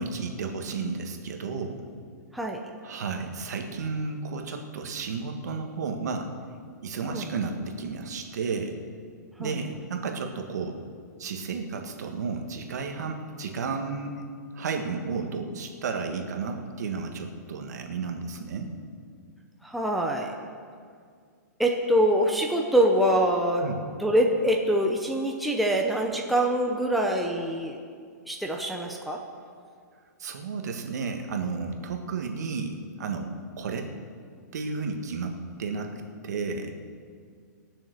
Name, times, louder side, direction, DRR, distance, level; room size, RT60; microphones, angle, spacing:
voice 1, 0.0-1.8 2.8-6.3 6.8-8.8 9.4-10.8 11.2-14.1 14.5-18.7 23.6-23.8 30.2-33.3 33.6-33.9 34.5-36.7, right 4 dB, 65° right, 4 dB, 1.7 m, -32 dB
voice 2, 2.3-2.6 7.1-7.3 9.4-9.6 19.6-20.4 21.6-23.7 24.0-27.8 28.3-29.2, right 1 dB, ahead, 0 dB, 0.7 m, -24 dB
19.5 x 7.0 x 6.6 m, 2.1 s
hypercardioid pair, 155°, 10 cm